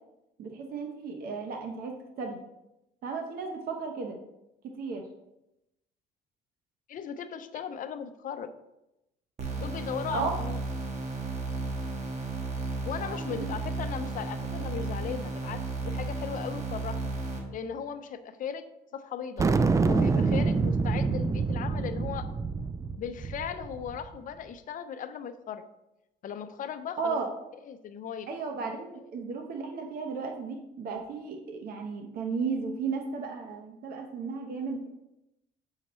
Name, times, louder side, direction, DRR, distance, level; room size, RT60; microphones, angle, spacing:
voice 1, 0.4-2.4 3.0-4.2 4.8-5.0 10.1-10.3 13.0-13.5 27.0-27.3 28.3-34.8, right 5 dB, 60° right, 2 dB, 0.9 m, -34 dB
voice 2, 6.9-8.5 9.6-10.6 12.9-17.1 17.5-18.6 18.9-19.5 19.9-22.3 23.0-25.7 26.2-27.2 27.7-28.3, left 8 dB, 50° left, 10 dB, 0.6 m, -37 dB
sound 1, 9.4-17.4, right 3 dB, 45° right, 1.4 m, -34 dB
sound 2, 19.4-24.1, right 4 dB, 20° right, 0.3 m, -26 dB
7.2 x 5.6 x 3.1 m, 0.89 s
cardioid pair, 110°, 17 cm